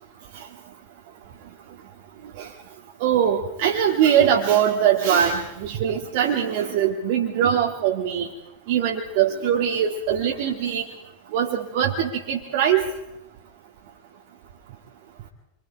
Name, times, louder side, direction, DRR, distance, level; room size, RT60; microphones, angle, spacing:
voice 1, 3.0-8.3 8.7-10.8 11.3-12.9, right 9 dB, 55° right, 0 dB, 1.9 m, -22 dB
27.5 x 24.0 x 4.6 m, 0.87 s
figure-of-eight pair, 90°, 0 cm